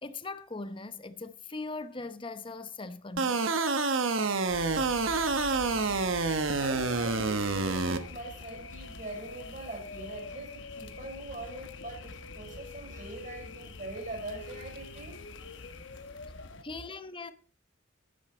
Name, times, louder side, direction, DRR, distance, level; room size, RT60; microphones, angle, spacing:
voice 1, 0.0-3.4 16.6-17.3, left 3 dB, 25° left, 0.8 m, -40 dB
sound 1, 3.2-8.0, right 4 dB, 75° right, 1.1 m, -28 dB
sound 2, 4.5-16.6, left 3 dB, 65° left, 1.1 m, -45 dB
voice 2, 5.2-6.1 6.6-15.2 16.6-16.7, right 2 dB, 45° right, 5.6 m, -43 dB
12.0 x 9.5 x 4.4 m
head